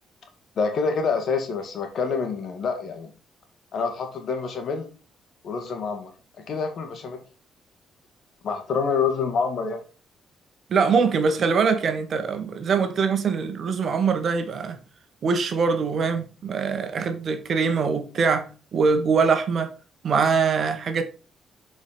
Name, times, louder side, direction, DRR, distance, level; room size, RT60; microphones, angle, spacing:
voice 1, 0.6-3.1 3.7-4.9 5.4-6.1 6.5-7.2 8.4-9.8, left 5 dB, 60° left, 2.0 m, -27 dB
voice 2, 10.7-14.8 15.2-19.7 20.0-21.0, right 5 dB, 55° right, 1.4 m, -23 dB
7.3 x 4.8 x 5.2 m
cardioid pair, 90°, 0 cm